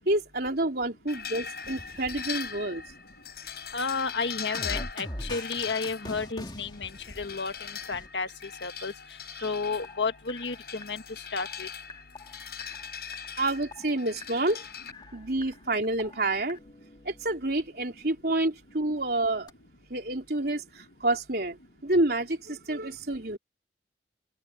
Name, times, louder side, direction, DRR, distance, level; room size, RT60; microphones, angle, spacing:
voice 1, 0.1-2.8 13.4-14.6 15.1-16.6 17.1-19.5 19.9-21.6 21.8-23.4, right 2 dB, 60° right, 4.0 m, -28 dB
sound 1, 1.1-14.9, left 7 dB, 60° left, 5.1 m, -41 dB
sound 2, 1.6-3.1 3.4-8.1 9.8-17.7 19.5-19.6, left 1 dB, 25° left, 2.0 m, -43 dB
voice 2, 3.7-6.9 7.2-7.5 7.9-8.3 8.6-8.9 9.4-11.0 11.3-11.7, left 4 dB, 85° left, 1.6 m, -31 dB
open air
head